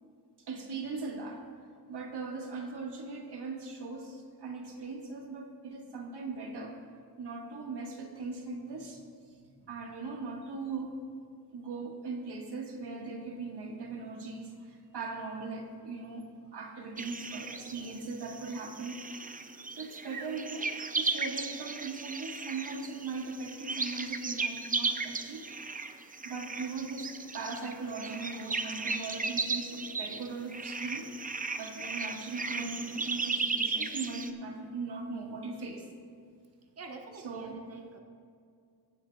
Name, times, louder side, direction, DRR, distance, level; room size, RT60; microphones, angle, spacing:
voice 1, 0.5-1.4 1.9-6.8 7.2-10.9 11.5-19.1 19.7-25.5 26.2-31.1 31.6-35.9 37.2-37.6, right 3 dB, 85° right, 1 dB, 1.6 m, -39 dB
sound 1, 17.0-34.3, right 4 dB, 20° right, 0.5 m, -36 dB
voice 2, 36.8-38.0, right 3 dB, 40° right, 2 dB, 1.0 m, -46 dB
23.0 x 9.5 x 2.3 m, 2.3 s
wide cardioid pair, 120°, 39 cm